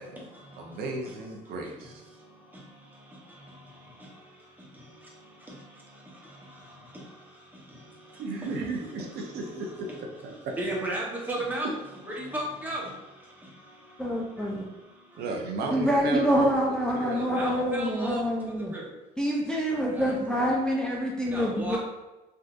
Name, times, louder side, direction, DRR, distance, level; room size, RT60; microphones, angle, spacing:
voice 1, 0.0-1.5 1.8-8.5 9.1-10.0 10.6-11.8 12.0-15.3 17.1-19.0 19.9-20.5 21.3-21.8, right 1 dB, 10° right, -4 dB, 1.0 m, -39 dB
voice 2, 0.6-1.9 8.2-10.6 11.6-11.8 15.2-17.3, right 3 dB, 70° right, 1 dB, 0.6 m, -34 dB
voice 3, 14.0-14.7 15.7-18.7 19.2-21.8, equal, 5° left, -3 dB, 0.4 m, -26 dB
3.5 x 2.5 x 2.4 m, 1.0 s
cardioid pair, 110°, 17 cm